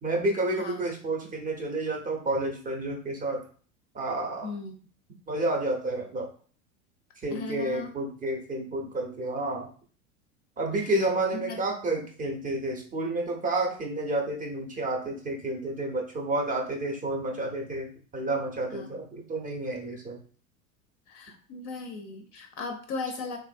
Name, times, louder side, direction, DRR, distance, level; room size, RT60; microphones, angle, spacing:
voice 1, 0.0-3.4 3.9-4.5 5.3-6.3 7.2-9.7 10.6-20.2, right 2 dB, 20° right, 1 dB, 0.6 m, -30 dB
voice 2, 4.4-4.7 7.3-7.9 11.4-11.6 18.7-19.0 21.1-23.4, left 4 dB, 35° left, 4 dB, 0.5 m, -37 dB
3.1 x 2.5 x 2.5 m, 0.42 s
figure-of-eight pair, 85°, 43 cm